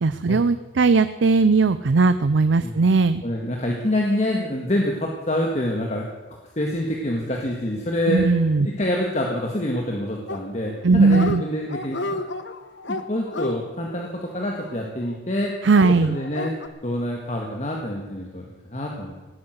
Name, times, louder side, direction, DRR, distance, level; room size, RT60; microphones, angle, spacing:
voice 1, 0.0-3.2 8.1-8.7 10.8-11.4 15.6-16.2, right 4 dB, 80° right, 13 dB, 0.5 m, -18 dB
voice 2, 3.2-8.3 8.6-12.2 12.9-15.5 16.0-16.5 16.8-19.1, left 1 dB, 40° left, 0 dB, 1.8 m, -26 dB
Dog, 10.3-10.8 11.0-11.4 11.7-15.1 15.7-16.7, left 2 dB, 80° left, 1.2 m, -31 dB
17.5 x 9.7 x 8.0 m, 1.3 s
head